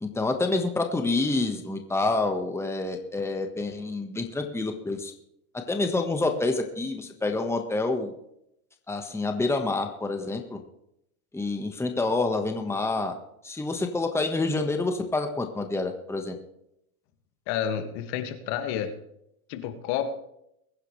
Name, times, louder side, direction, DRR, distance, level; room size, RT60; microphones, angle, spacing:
voice 1, 0.0-5.1 5.7-8.1 8.9-10.6 11.3-13.1 13.4-16.3, left 3 dB, 5° left, 5 dB, 1.5 m, -27 dB
voice 2, 17.5-19.0 19.5-20.1, left 9 dB, 60° left, 7 dB, 2.2 m, -30 dB
22.5 x 9.8 x 3.3 m, 0.78 s
supercardioid pair, 115°, 46 cm